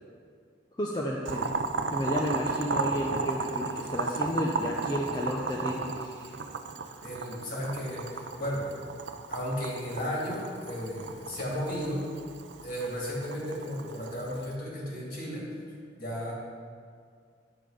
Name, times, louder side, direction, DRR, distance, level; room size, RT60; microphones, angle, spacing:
voice 1, 0.8-1.6 1.9-6.3, equal, 25° left, -3 dB, 0.7 m, -32 dB
Boiling, 1.3-14.5, right 4 dB, 70° right, 0.5 m, -35 dB
voice 2, 7.0-8.8 9.3-12.1 12.6-15.5 16.0-16.3, equal, 55° left, -5 dB, 2.8 m, -34 dB
9.5 x 7.2 x 5.1 m, 2.2 s
head